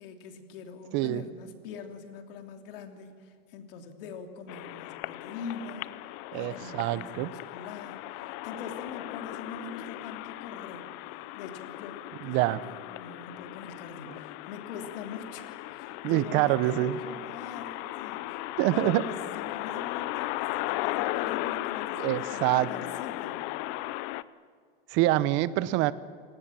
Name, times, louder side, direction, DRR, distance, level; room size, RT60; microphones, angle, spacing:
voice 1, 0.0-6.0 6.3-10.9 11.3-23.5, left 5 dB, 65° left, 6 dB, 3.1 m, -43 dB
voice 2, 0.9-1.2 6.3-7.3 12.2-12.6 16.0-17.0 18.6-19.0 22.0-22.7 24.9-25.9, right 16 dB, 40° right, 17 dB, 0.9 m, -25 dB
sound 1, 4.5-24.2, left 17 dB, 40° left, 0.6 m, -36 dB
27.5 x 19.0 x 7.6 m, 2.2 s
supercardioid pair, 145°, 30 cm